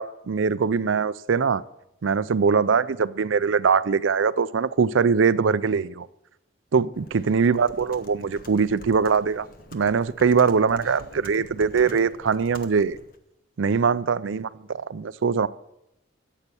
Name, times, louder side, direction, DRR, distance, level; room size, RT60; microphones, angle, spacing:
voice 1, 0.0-1.6 2.0-6.1 6.7-9.5 9.7-13.0 13.6-15.5, right 5 dB, 75° right, 0.5 m, -22 dB
Computer keyboard, 6.9-13.2, left 1 dB, 45° left, 1.2 m, -46 dB
13.5 x 8.2 x 7.0 m
head